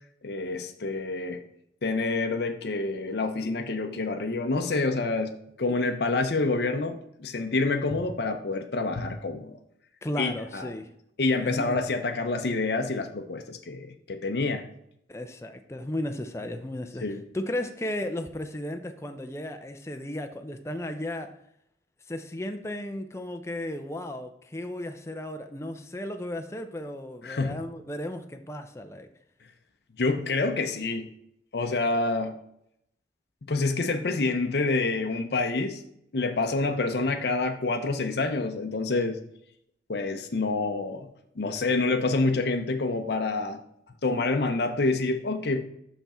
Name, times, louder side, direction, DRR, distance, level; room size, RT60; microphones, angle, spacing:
voice 1, 0.2-1.4 1.8-5.3 5.6-9.6 10.2-10.7 11.2-14.7 17.0-17.2 27.2-27.5 30.0-31.1 31.5-32.3 33.5-35.8 36.1-39.2 39.9-41.1 41.4-43.6 44.0-45.6, left 3 dB, 65° left, 5 dB, 0.6 m, -27 dB
voice 2, 10.0-10.9 11.4-11.8 15.1-21.3 22.1-29.1, left 1 dB, 15° left, 6 dB, 0.5 m, -35 dB
5.8 x 5.7 x 4.2 m, 0.75 s
head